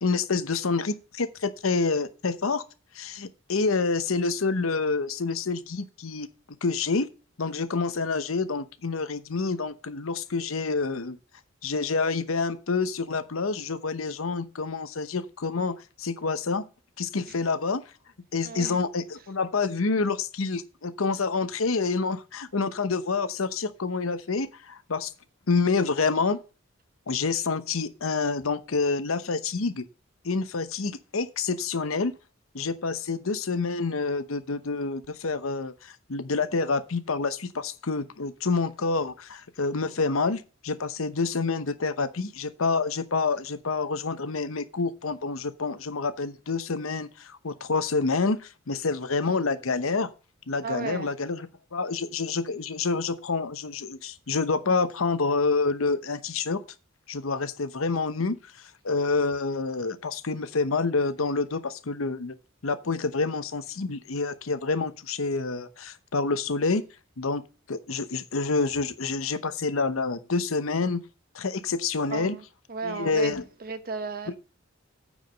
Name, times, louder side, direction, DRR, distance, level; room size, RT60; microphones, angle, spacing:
voice 1, 0.0-2.6 2.9-6.3 6.6-7.1 7.4-11.2 11.6-16.6 17.0-17.8 18.3-25.1 25.5-26.4 27.1-29.8 30.2-32.1 32.5-50.1 50.5-56.6 57.1-58.4 58.8-62.4 62.6-66.8 67.2-67.4 67.7-71.0 71.3-72.4 72.8-73.4 74.3-74.4, left 4 dB, 90° left, 0.9 m, -28 dB
voice 2, 18.4-18.8 50.6-51.1 72.1-72.4 72.7-74.4, right 4 dB, 45° right, 1.1 m, -35 dB
9.3 x 5.0 x 6.2 m
head